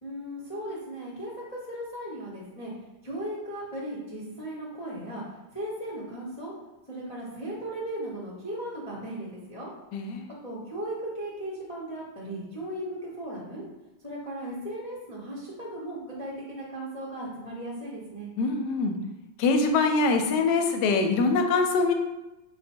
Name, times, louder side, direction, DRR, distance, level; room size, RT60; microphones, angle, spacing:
voice 1, 0.0-2.7 3.0-5.2 5.5-6.5 6.9-9.7 10.4-13.6 14.0-18.3, right 1 dB, 45° left, -6 dB, 0.4 m, -37 dB
voice 2, 9.9-10.3 18.4-19.0 19.4-21.9, left 3 dB, 75° left, 5 dB, 1.1 m, -24 dB
5.1 x 2.2 x 4.3 m, 1.0 s
omnidirectional pair, 2.1 m